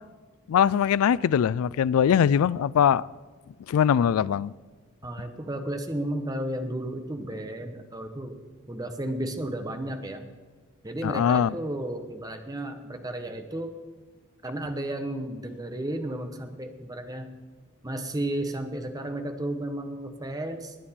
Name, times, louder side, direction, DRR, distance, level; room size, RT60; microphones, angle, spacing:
voice 1, 0.5-3.0 3.7-4.5 11.0-11.5, left 8 dB, 75° left, 0.3 m, -22 dB
voice 2, 5.0-8.4 8.7-10.2 10.8-13.8 14.4-17.3 17.8-20.7, right 1 dB, 15° right, 1.0 m, -33 dB
20.0 x 9.0 x 4.3 m
head